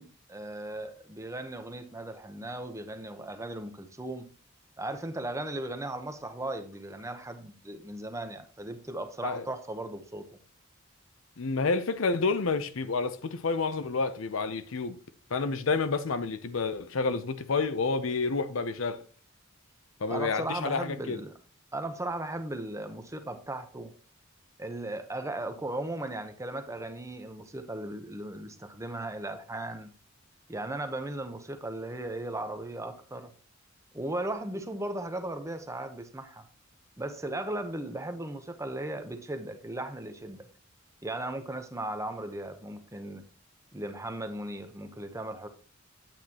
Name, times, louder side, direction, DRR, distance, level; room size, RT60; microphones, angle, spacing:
voice 1, 0.0-4.2 4.8-10.3 20.1-21.3 21.7-23.9 24.6-29.9 30.5-33.3 33.9-36.4 37.0-40.5 41.0-43.2 43.7-45.5, right 1 dB, 15° right, 0.8 m, -37 dB
voice 2, 11.4-15.0 15.3-19.0 20.0-21.2, left 4 dB, 75° left, 0.7 m, -29 dB
8.9 x 8.0 x 2.9 m
head